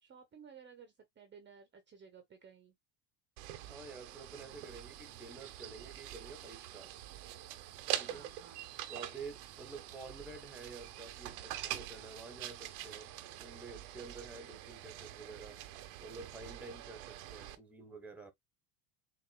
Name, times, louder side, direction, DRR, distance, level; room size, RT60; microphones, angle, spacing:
voice 1, 0.0-2.7 8.0-8.7, right 6 dB, 25° right, 1.0 m, -56 dB
sound 1, 3.4-17.6, right 13 dB, 75° right, 1.0 m, -45 dB
voice 2, 3.7-6.9 8.0-8.3 8.9-15.6 16.0-18.3, right 3 dB, 5° right, 1.3 m, -50 dB
7.2 x 2.6 x 2.3 m
supercardioid pair, 115°, 43 cm